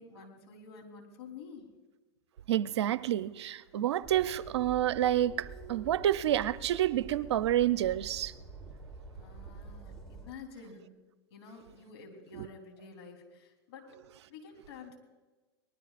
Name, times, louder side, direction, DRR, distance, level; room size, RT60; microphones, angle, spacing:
voice 1, 0.0-1.7 9.1-11.0 11.3-14.0 14.3-15.0, left 5 dB, 75° left, 3.7 m, -49 dB
voice 2, 2.5-8.3 12.4-12.5, right 12 dB, 80° right, 0.6 m, -29 dB
Train, 4.0-10.3, right 3 dB, 5° left, 3.3 m, -48 dB
23.5 x 19.5 x 2.5 m
hypercardioid pair, 120°, 14 cm